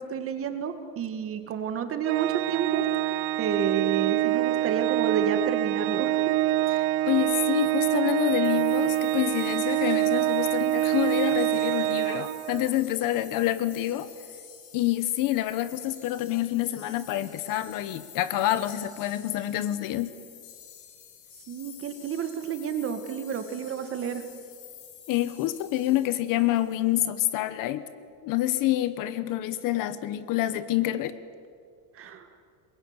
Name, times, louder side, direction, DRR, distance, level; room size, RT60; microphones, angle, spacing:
voice 1, 0.0-6.3 21.5-24.2 32.0-32.4, right 7 dB, 30° right, 8 dB, 2.0 m, -31 dB
Organ, 2.0-12.8, right 15 dB, 65° right, 0.9 m, -25 dB
voice 2, 7.1-14.1 14.7-20.1 25.1-27.8 28.2-31.2, left 14 dB, 50° left, 14 dB, 1.1 m, -27 dB
sound 1, 8.4-27.1, left 9 dB, 85° left, 4.9 m, -49 dB
23.5 x 21.5 x 9.7 m, 2.2 s
cardioid pair, 165°, 42 cm